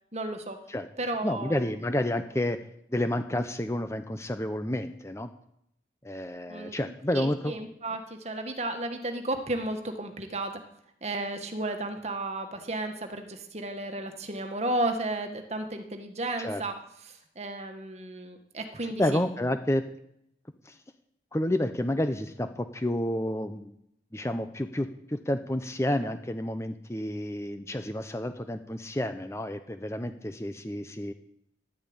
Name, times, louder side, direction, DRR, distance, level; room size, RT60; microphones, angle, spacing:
voice 1, 0.1-0.6 1.0-1.6 6.5-10.6 11.0-16.7 17.1-19.2, right 2 dB, 35° right, 6 dB, 1.6 m, -33 dB
voice 2, 1.2-2.6 2.9-5.3 6.0-7.5 16.4-16.6 19.0-19.8 20.7-20.8 21.3-23.7 24.1-31.1, left 1 dB, 15° left, 9 dB, 0.7 m, -30 dB
12.0 x 8.8 x 8.8 m, 0.75 s
head